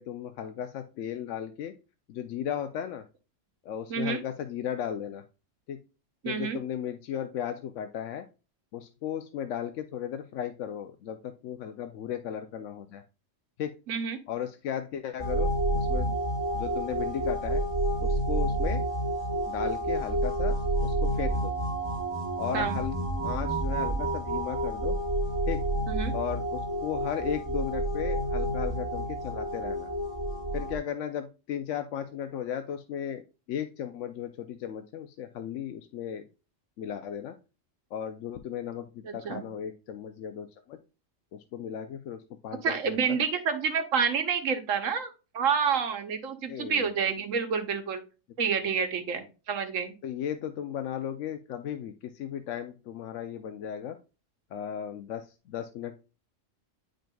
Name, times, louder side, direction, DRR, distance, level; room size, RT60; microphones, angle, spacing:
voice 1, 0.0-1.7 2.1-3.0 3.6-5.2 5.7-5.8 6.2-8.2 8.7-13.0 13.6-13.7 14.3-16.2 16.5-17.6 18.0-18.8 19.5-20.5 20.8-21.5 22.4-23.0 23.2-25.0 25.5-25.6 26.1-29.9 30.5-33.2 33.5-36.2 36.8-37.3 37.9-40.8 41.3-42.2 42.4-43.2 46.5-46.9 50.0-54.0 54.5-56.0, left 9 dB, 75° left, 7 dB, 0.9 m, -35 dB
voice 2, 3.9-4.2 6.2-6.6 13.9-14.2 22.5-22.8 25.9-26.1 39.0-39.4 42.6-48.0 48.4-49.9, right 6 dB, 85° right, 7 dB, 1.3 m, -28 dB
sound 1, 15.2-30.8, right 1 dB, 20° right, 1.1 m, -29 dB
8.9 x 5.1 x 2.3 m, 0.31 s
omnidirectional pair, 1.3 m